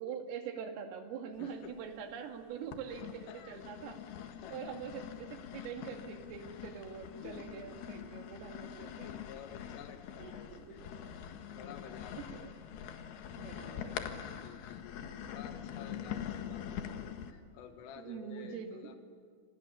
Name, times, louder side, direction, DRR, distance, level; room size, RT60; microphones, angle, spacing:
voice 1, 0.0-4.0 4.5-9.1 10.2-10.9 11.6-11.7 12.2-12.5 13.4-14.4 16.0-16.2 18.0-19.0, right 7 dB, 85° right, 5 dB, 4.9 m, -44 dB
voice 2, 1.4-1.7 3.3-3.7 4.2-4.8 6.4-6.9 7.2-7.8 8.8-10.8 11.1-11.2 11.6-12.4 13.3-14.0 14.3-16.7 17.0-19.0, left 9 dB, 80° left, 7 dB, 3.8 m, -52 dB
sound 1, 1.5-2.2 2.7-17.3, left 9 dB, 65° left, 3.0 m, -44 dB
29.5 x 26.5 x 7.2 m, 2.2 s
omnidirectional pair, 5.8 m